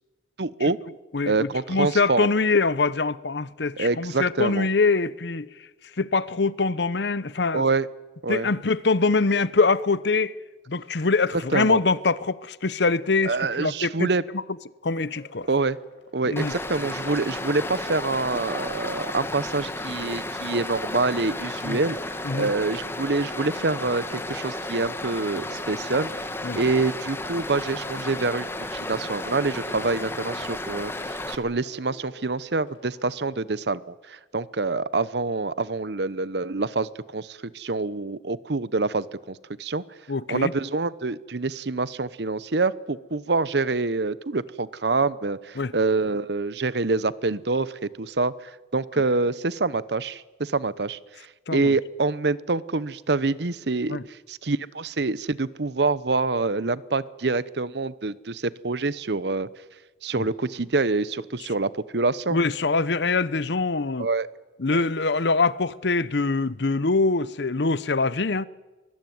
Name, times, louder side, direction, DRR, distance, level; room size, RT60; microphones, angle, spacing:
voice 1, 0.4-0.8 1.3-2.3 3.8-4.7 7.5-7.9 8.2-8.5 11.5-11.8 13.2-14.2 15.5-15.8 16.1-22.0 22.3-26.1 26.5-33.8 34.1-39.8 40.3-48.3 48.7-51.0 51.5-59.5 60.0-62.4 64.0-64.3 64.7-64.8, right 3 dB, 60° right, 0.9 m, -26 dB
voice 2, 1.1-5.5 6.0-7.6 8.3-10.4 10.7-14.4 14.8-15.5 16.3-16.5 21.6-21.8 22.2-22.5 26.4-26.6 40.1-40.5 45.6-45.7 51.5-51.8 53.9-54.0 60.2-60.3 62.3-64.1 64.6-68.4, left 3 dB, 65° left, 0.8 m, -24 dB
sound 1, 15.1-33.4, left 1 dB, 90° left, 6.0 m, -50 dB
Stream, 16.4-31.4, left 2 dB, 15° left, 1.5 m, -33 dB
23.5 x 21.0 x 9.4 m
head